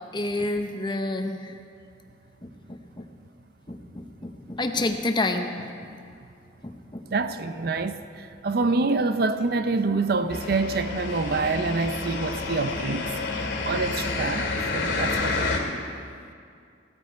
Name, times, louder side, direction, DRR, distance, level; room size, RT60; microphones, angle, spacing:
voice 1, 0.1-1.6 2.4-3.0 3.7-5.6 6.6-7.0, left 2 dB, 25° left, 0.8 m, -29 dB
voice 2, 7.1-8.0 8.4-13.1 13.7-15.6, right 3 dB, 55° right, 0.5 m, -26 dB
sound 1, 10.3-15.6, left 3 dB, 85° left, 2.1 m, -29 dB
16.0 x 12.5 x 4.6 m
head